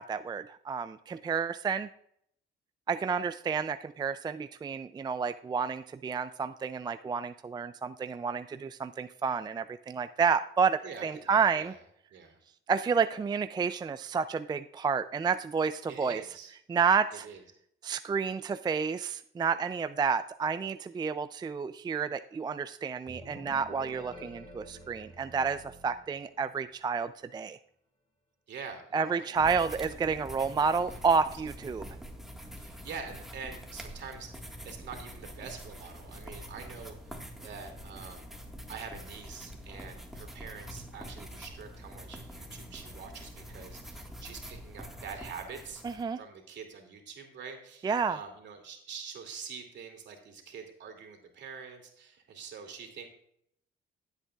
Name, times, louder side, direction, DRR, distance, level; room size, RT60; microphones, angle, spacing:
voice 1, 0.0-1.9 2.9-11.7 12.7-16.2 16.7-17.3 17.8-27.6 28.9-31.8 45.8-46.2 47.8-48.2, right 5 dB, 20° right, 11 dB, 0.3 m, -30 dB
voice 2, 10.8-11.8 12.1-12.4 15.9-16.5 17.1-17.4 28.5-29.4 29.7-29.8 30.7-31.0 32.6-37.2 37.4-38.3 38.7-45.8 46.2-53.1, right 6 dB, 65° right, 4 dB, 2.5 m, -45 dB
sound 1, 23.1-26.8, equal, 25° left, 4.3 m, -49 dB
sound 2, 29.4-46.0, equal, ahead, 1.7 m, -45 dB
16.5 x 8.1 x 2.4 m, 0.70 s
cardioid pair, 90°, 20 cm